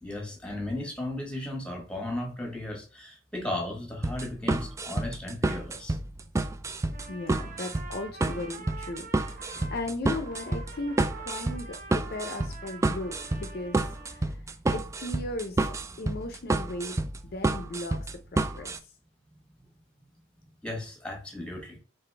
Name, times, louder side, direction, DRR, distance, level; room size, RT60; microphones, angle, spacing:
voice 1, 0.0-6.0 20.6-21.8, left 1 dB, 5° left, 1.3 m, -35 dB
sound 1, 4.0-18.8, right 2 dB, 15° right, 0.3 m, -29 dB
Trumpet, 6.9-9.8 10.1-14.2, right 4 dB, 45° right, 0.8 m, -46 dB
voice 2, 7.1-15.7 16.0-18.9, left 2 dB, 50° left, 0.6 m, -37 dB
4.1 x 3.9 x 3.3 m
head